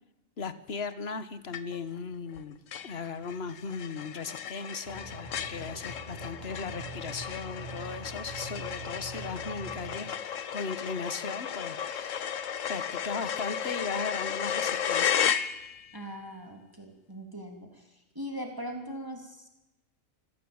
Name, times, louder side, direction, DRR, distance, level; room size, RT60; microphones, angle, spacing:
voice 1, 0.4-2.6 2.8-15.3, left 5 dB, 50° left, 14 dB, 1.5 m, -37 dB
sound 1, 1.5-2.0 2.3-2.4 2.7-16.0, left 8 dB, 70° left, 1.3 m, -34 dB
sound 2, 4.8-10.0, right 2 dB, 35° left, 3.4 m, -44 dB
voice 2, 15.9-19.5, equal, 15° right, 4 dB, 3.1 m, -40 dB
25.5 x 15.5 x 8.8 m, 0.95 s
omnidirectional pair, 1.4 m